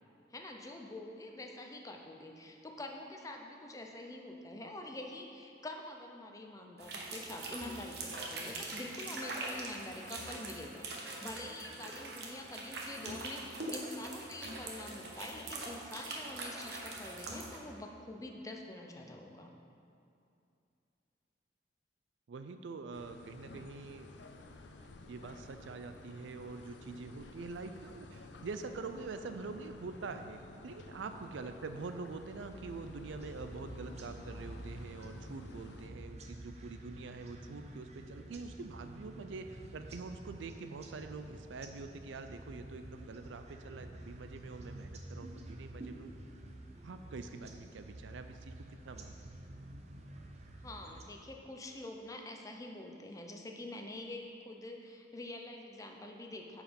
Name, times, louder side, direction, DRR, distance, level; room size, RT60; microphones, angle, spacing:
voice 1, 0.3-19.5 50.6-56.6, left 1 dB, 20° left, 2 dB, 0.6 m, -46 dB
sound 1, 6.8-17.6, right 2 dB, 60° right, 1.1 m, -43 dB
voice 2, 22.3-24.1 25.1-46.1 46.8-49.4, right 4 dB, 85° right, 8 dB, 0.4 m, -45 dB
sound 2, 22.9-35.9, left 2 dB, 75° left, 0.6 m, -52 dB
sound 3, 33.1-51.0, right 1 dB, 35° right, 0.7 m, -50 dB
9.2 x 4.9 x 5.2 m, 2.6 s
head